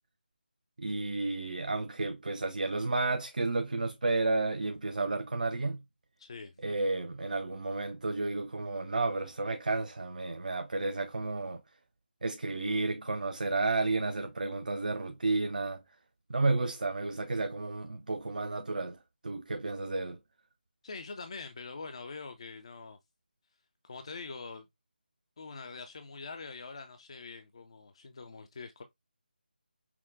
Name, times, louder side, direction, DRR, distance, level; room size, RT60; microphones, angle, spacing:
voice 1, 0.8-5.8 6.6-11.6 12.2-15.8 16.3-19.0 19.2-20.2, right 3 dB, 55° right, 0.4 m, -32 dB
voice 2, 6.2-6.5 20.8-23.0 23.8-24.7 25.4-28.8, left 4 dB, 35° left, 0.4 m, -44 dB
5.7 x 2.1 x 2.5 m
figure-of-eight pair, 155°, 5 cm